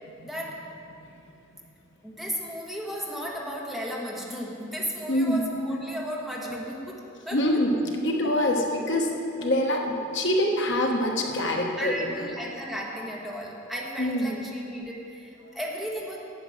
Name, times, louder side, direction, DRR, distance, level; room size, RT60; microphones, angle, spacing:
voice 1, 0.2-0.7 2.0-7.6 11.8-16.2, equal, ahead, -3 dB, 1.3 m, -35 dB
voice 2, 5.1-5.4 7.3-12.3 14.0-14.4 15.4-15.6, left 1 dB, 60° left, 1 dB, 1.1 m, -25 dB
9.7 x 8.6 x 6.4 m, 2.7 s
head